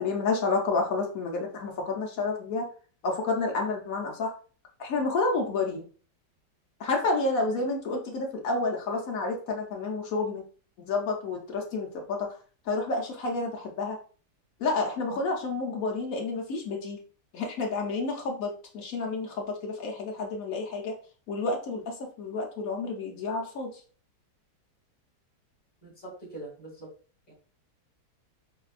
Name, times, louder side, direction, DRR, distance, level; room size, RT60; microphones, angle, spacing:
voice 1, 0.0-2.7 3.0-4.3 4.8-5.8 6.8-10.4 10.8-12.4 12.6-14.0 14.6-17.0 17.3-20.9 21.3-23.8, left 3 dB, 65° left, 0 dB, 1.0 m, -30 dB
voice 2, 25.8-26.9 27.3-27.4, right 2 dB, 5° left, -4 dB, 1.2 m, -43 dB
4.9 x 2.2 x 2.4 m, 0.40 s
omnidirectional pair, 1.8 m